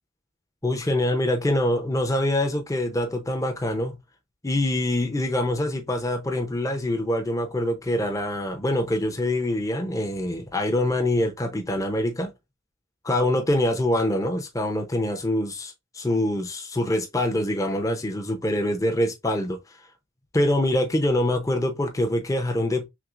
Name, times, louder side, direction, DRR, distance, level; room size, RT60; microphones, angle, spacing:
voice 1, 0.6-4.0 4.4-12.3 13.0-19.6 20.3-22.9, left 1 dB, 15° left, 0.6 m, -25 dB
5.9 x 2.0 x 2.4 m
head